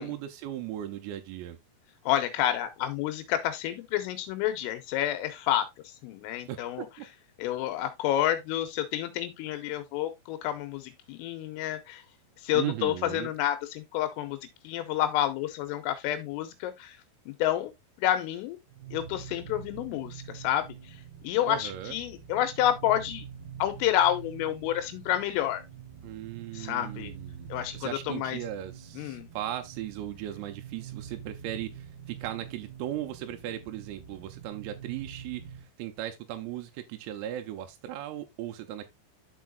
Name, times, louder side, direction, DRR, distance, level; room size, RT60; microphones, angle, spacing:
voice 1, 0.0-1.6 6.5-7.1 12.5-13.3 21.5-22.0 26.0-27.5 27.8-38.9, right 12 dB, 85° right, 3.5 m, -37 dB
voice 2, 2.1-5.7 6.0-6.9 7.4-12.0 12.4-14.4 14.6-17.0 17.3-17.7 18.0-18.6 18.9-20.7 21.2-23.3 23.6-25.6 26.5-27.1 27.5-28.4 29.0-29.3, left 12 dB, 85° left, 3.3 m, -29 dB
sound 1, 18.7-35.7, right 8 dB, 70° right, 3.0 m, -45 dB
12.0 x 4.7 x 2.5 m
omnidirectional pair, 6.0 m